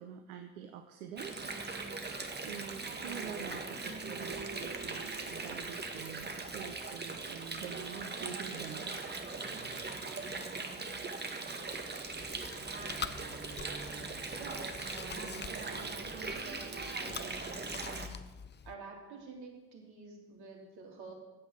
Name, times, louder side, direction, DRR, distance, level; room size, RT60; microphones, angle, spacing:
voice 1, 0.0-1.5 2.4-9.2, right 8 dB, 80° right, 7 dB, 0.8 m, -46 dB
Water, 1.2-18.1, right 3 dB, 25° right, 1.7 m, -40 dB
Chewing mastication, 12.1-18.7, left 6 dB, 25° left, 0.7 m, -46 dB
voice 2, 14.3-17.2 18.6-21.1, right 4 dB, 60° right, 1 dB, 3.4 m, -49 dB
10.0 x 8.2 x 8.1 m, 1.1 s
hypercardioid pair, 55°, 42 cm